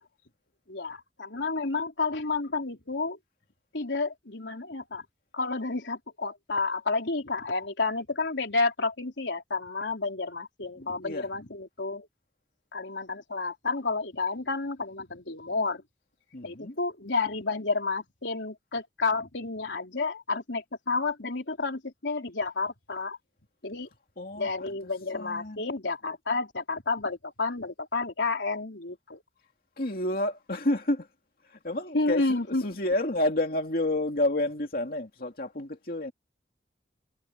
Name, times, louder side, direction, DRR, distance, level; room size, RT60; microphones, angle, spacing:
voice 1, 0.7-3.2 3.7-5.0 5.3-12.1 12.7-15.8 16.4-23.2 23.6-23.9 24.4-29.2 31.9-32.6, left 3 dB, 85° left, 3.4 m, -30 dB
voice 2, 10.7-11.4 16.3-16.8 24.2-25.6 29.8-31.1 31.4-36.1, left 1 dB, 55° left, 2.4 m, -30 dB
head